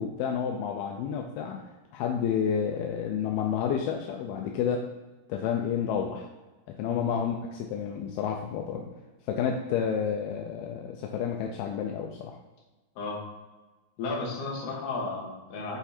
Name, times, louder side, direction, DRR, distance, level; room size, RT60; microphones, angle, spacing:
voice 1, 0.0-4.9 5.3-6.3 6.8-8.9 9.3-12.4, left 7 dB, 80° left, 2 dB, 2.2 m, -30 dB
voice 2, 14.0-15.8, left 3 dB, 55° left, -3 dB, 2.6 m, -34 dB
8.1 x 4.5 x 4.2 m, 1.2 s
omnidirectional pair, 4.9 m